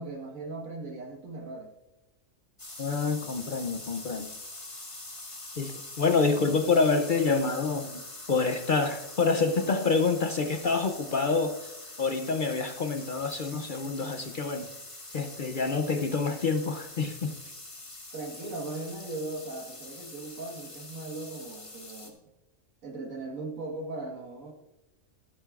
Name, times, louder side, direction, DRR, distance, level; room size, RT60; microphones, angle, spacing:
voice 1, 0.0-1.7 18.1-22.2 22.8-24.5, right 2 dB, 80° right, 2 dB, 1.9 m, -38 dB
sound 1, 2.6-22.1, left 2 dB, 25° left, 1.4 m, -44 dB
voice 2, 2.8-4.3 5.6-8.0 8.3-11.7 12.0-14.7 15.1-17.3, left 4 dB, 50° left, 7 dB, 0.6 m, -27 dB
12.5 x 12.0 x 2.4 m, 1.0 s
omnidirectional pair, 1.4 m